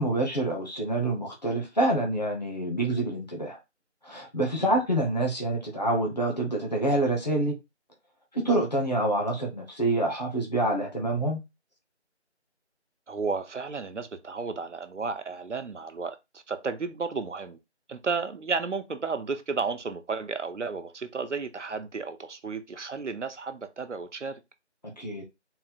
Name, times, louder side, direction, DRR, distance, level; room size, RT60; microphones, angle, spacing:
voice 1, 0.0-3.6 4.0-7.5 8.3-11.4 25.0-25.2, right 1 dB, 35° left, 0.9 m, -27 dB
voice 2, 13.1-17.6 17.9-24.4, right 4 dB, 80° right, 0.7 m, -33 dB
4.1 x 2.0 x 4.2 m
figure-of-eight pair, 180°, 35 cm